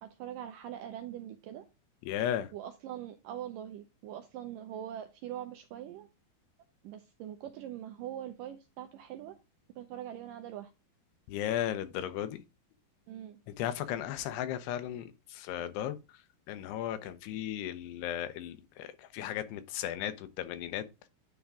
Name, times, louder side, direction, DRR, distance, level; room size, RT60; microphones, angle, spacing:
voice 1, 0.0-1.7 2.5-6.1 6.8-9.4 9.8-10.7 13.1-13.4, right 11 dB, 80° right, 1.9 m, -42 dB
voice 2, 2.1-2.5 11.3-12.4 13.5-16.2 16.5-21.1, left 11 dB, 90° left, 2.9 m, -36 dB
9.9 x 3.6 x 4.8 m
omnidirectional pair, 4.6 m